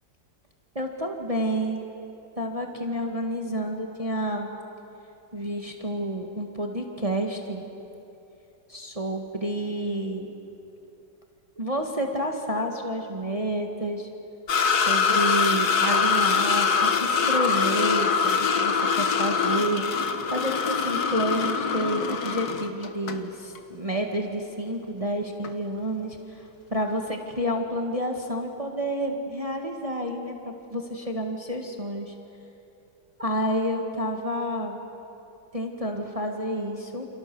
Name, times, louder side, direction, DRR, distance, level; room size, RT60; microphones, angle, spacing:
voice 1, 0.8-1.9 2.4-4.5 5.3-7.6 8.7-10.3 11.6-14.1 14.7-19.8 20.3-32.1 33.2-34.8 35.5-37.1, equal, 20° right, 2 dB, 1.9 m, -29 dB
sound 1, 14.5-23.2 23.6-23.7 25.4-25.5, left 5 dB, 60° left, 1.8 m, -24 dB
29.0 x 29.0 x 7.1 m, 2.9 s
omnidirectional pair, 2.0 m